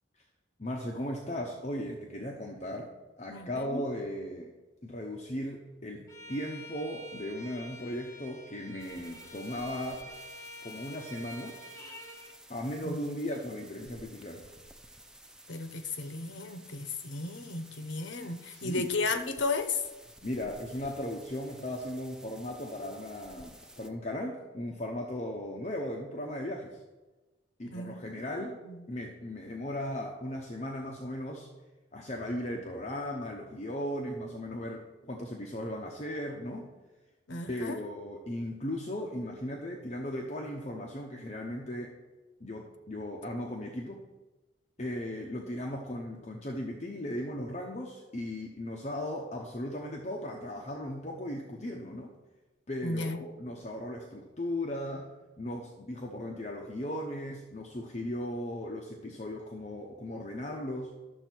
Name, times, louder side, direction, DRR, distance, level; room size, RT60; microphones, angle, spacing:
voice 1, 0.6-2.9 3.2-4.5 4.8-10.0 10.6-11.6 12.5-14.4 18.6-18.9 20.2-26.8 27.6-28.6 28.9-31.5 31.9-36.7 37.5-42.0 42.4-44.0 44.8-52.1 52.7-55.1 55.4-60.9, left 1 dB, 35° left, 0 dB, 0.9 m, -37 dB
voice 2, 3.3-3.8 12.8-13.0 15.5-19.8 27.7-28.8 37.3-37.8 52.8-53.2, left 3 dB, 75° left, 9 dB, 0.9 m, -34 dB
Bowed string instrument, 6.1-12.4, equal, 15° left, 1.1 m, -47 dB
sound 1, 8.8-23.9, right 1 dB, 5° right, 0.5 m, -54 dB
12.0 x 7.0 x 4.5 m, 1.2 s
head